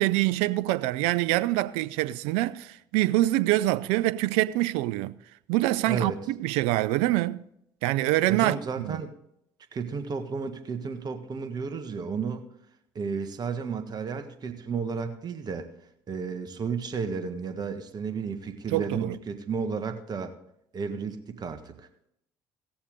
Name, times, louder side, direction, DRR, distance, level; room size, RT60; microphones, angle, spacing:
voice 1, 0.0-5.1 5.5-7.4 7.8-9.0 18.7-19.2, right 17 dB, 75° right, 0.5 m, -25 dB
voice 2, 5.9-6.2 8.3-9.2 9.7-12.5 12.9-15.7 16.1-20.3 20.7-21.9, right 5 dB, 45° right, 1.5 m, -32 dB
18.0 x 7.0 x 3.7 m
hypercardioid pair, 60°, 10 cm